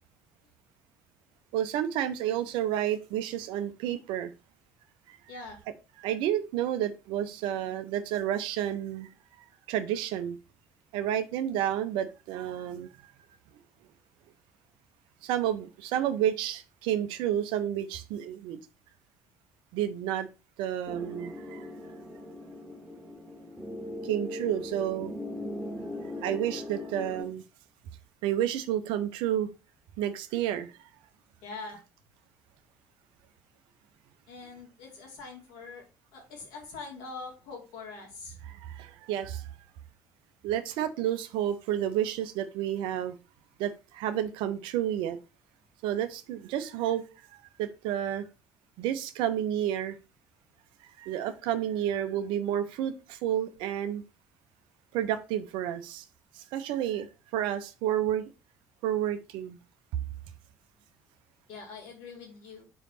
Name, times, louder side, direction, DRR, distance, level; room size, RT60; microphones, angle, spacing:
voice 1, 1.5-4.3 5.1-5.2 6.0-9.1 9.7-10.4 10.9-12.9 15.2-18.6 19.7-20.3 20.6-21.7 24.0-25.1 26.2-27.4 28.2-29.5 30.0-30.7 38.4-39.5 40.4-43.1 43.6-45.2 45.8-47.1 47.3-48.2 48.8-50.0 51.0-54.0 54.9-56.1 56.3-57.1 57.3-58.2 58.8-59.6, right 11 dB, 60° right, 10 dB, 0.7 m, -30 dB
voice 2, 5.3-5.6 31.4-31.8 34.3-35.8 36.1-38.4 61.5-62.6, left 4 dB, 60° left, 0 dB, 2.3 m, -43 dB
sound 1, 20.9-27.2, left 1 dB, ahead, 1.8 m, -39 dB
5.0 x 4.0 x 5.7 m, 0.29 s
figure-of-eight pair, 55°, 10 cm